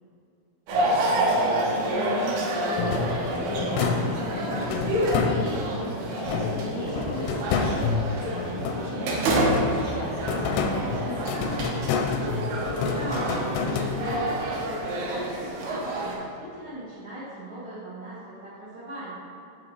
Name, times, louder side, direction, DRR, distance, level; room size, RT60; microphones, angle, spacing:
voice 1, 0.7-7.0 7.5-8.0 8.2-11.6, left 1 dB, 70° left, -11 dB, 1.7 m, -36 dB
sound 1, 0.7-16.2, right 1 dB, 70° right, 2.4 m, -28 dB
sound 2, 2.8-5.8 6.3-9.1 9.4-14.4, left 5 dB, 85° left, 3.2 m, -29 dB
voice 2, 12.8-19.1, right 1 dB, 85° right, -12 dB, 1.1 m, -38 dB
9.0 x 3.6 x 4.8 m, 2.6 s
omnidirectional pair, 5.7 m